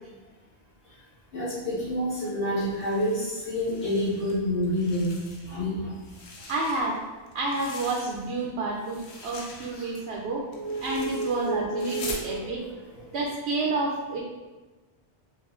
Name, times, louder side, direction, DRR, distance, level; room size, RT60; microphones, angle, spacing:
voice 1, 1.3-5.2 5.4-5.9 9.8-9.9 10.5-12.5, equal, 65° left, -11 dB, 1.6 m, -29 dB
sound 1, 2.6-4.3 4.6-5.6 6.0-8.5 8.8-12.3, left 3 dB, 80° left, 1.0 m, -43 dB
voice 2, 6.5-7.0 7.3-10.5 10.8-12.6 13.1-14.2, right 2 dB, 75° right, -2 dB, 0.8 m, -29 dB
5.2 x 2.5 x 2.4 m, 1.2 s
omnidirectional pair, 1.1 m